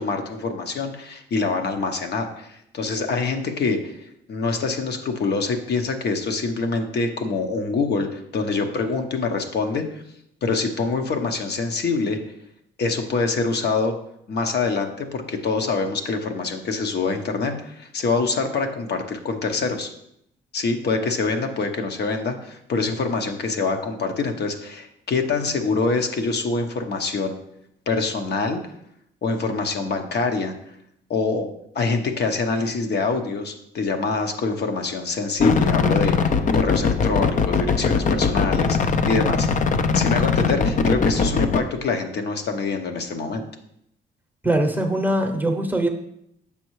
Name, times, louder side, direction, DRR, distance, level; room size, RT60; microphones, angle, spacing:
voice 1, 0.0-4.0 4.3-10.0 10.4-12.2 12.8-13.9 14.3-19.9 20.5-27.3 27.9-28.6 29.2-30.5 31.1-31.5 31.7-39.5 39.9-43.4, left 4 dB, 55° left, 5 dB, 0.9 m, -25 dB
sound 1, 35.4-41.6, left 5 dB, 40° left, 0.5 m, -21 dB
voice 2, 44.4-45.9, right 1 dB, 10° right, 4 dB, 0.8 m, -22 dB
7.0 x 5.3 x 3.1 m, 0.76 s
cardioid pair, 90°, 20 cm